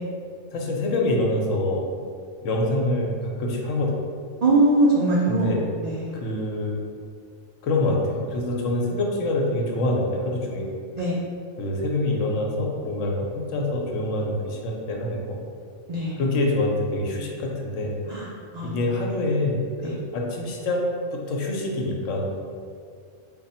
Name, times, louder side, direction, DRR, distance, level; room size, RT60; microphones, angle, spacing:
voice 1, 0.5-1.8 2.4-3.9 5.3-5.6 6.1-6.8 7.6-10.6 11.6-15.4 16.2-17.9 18.6-20.8 21.1-22.3, left 1 dB, 80° left, 0 dB, 1.0 m, -25 dB
voice 2, 4.4-5.5 5.8-6.1 11.0-11.2 15.9-16.2 18.1-18.2 18.5-18.7 19.8-19.9, right 2 dB, 90° right, -5 dB, 0.3 m, -21 dB
3.4 x 2.1 x 4.2 m, 2.2 s
omnidirectional pair, 1.3 m